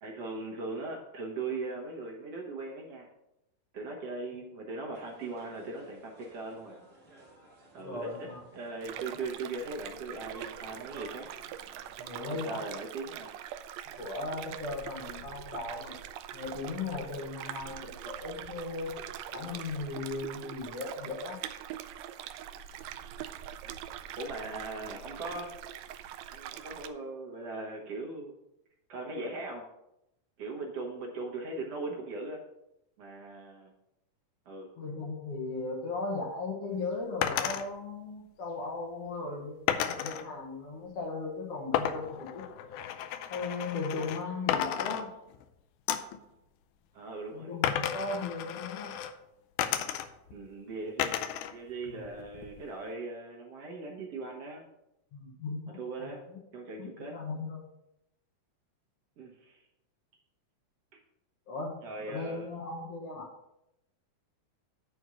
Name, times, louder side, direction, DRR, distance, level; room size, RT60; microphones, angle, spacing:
voice 1, 0.0-3.1 3.7-6.8 7.7-11.3 12.2-13.3 17.4-17.9 23.6-23.8 24.2-25.5 26.3-28.3 28.9-29.6 30.4-32.4 33.0-33.7 34.5-34.7 46.9-47.7 50.3-51.2 51.5-54.6 55.7-56.2 56.5-57.2 59.2-59.7 60.9-61.0 61.8-62.5, right 3 dB, 60° right, -1 dB, 2.0 m, -39 dB
sound 1, 4.9-12.5, right 2 dB, 35° right, 1.3 m, -54 dB
voice 2, 7.8-8.4 12.0-12.5 14.0-16.0 16.3-18.9 19.3-21.4 34.8-42.4 43.3-45.1 47.3-48.9 51.9-52.0 55.1-56.4 56.8-57.7 61.5-61.8 62.0-63.3, left 3 dB, 55° left, -1 dB, 2.1 m, -37 dB
sound 2, 8.8-26.9, right 11 dB, 80° right, 1.6 m, -43 dB
sound 3, 37.2-37.6 39.7-40.2 41.7-44.2 44.5-45.5 45.9-46.2 47.6-49.1 49.6-50.3 51.0-51.5 51.9-52.7, left 10 dB, 80° left, 2.1 m, -32 dB
9.4 x 4.4 x 6.2 m, 0.86 s
omnidirectional pair, 3.6 m